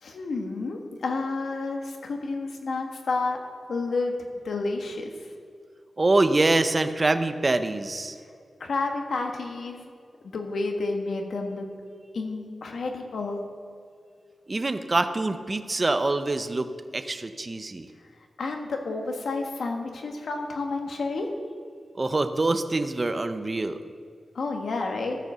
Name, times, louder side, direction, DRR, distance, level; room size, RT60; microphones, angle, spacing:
voice 1, 0.0-3.4 3.7-4.1 4.4-5.1 8.6-9.9 10.2-11.7 12.1-13.5 18.4-21.3 24.3-25.2, left 3 dB, 75° left, 2 dB, 1.4 m, -30 dB
voice 2, 6.0-8.2 14.5-16.7 16.9-17.9 22.0-23.8, right 2 dB, 30° right, 9 dB, 0.6 m, -25 dB
14.5 x 5.2 x 6.8 m, 2.2 s
wide cardioid pair, 140°, 0 cm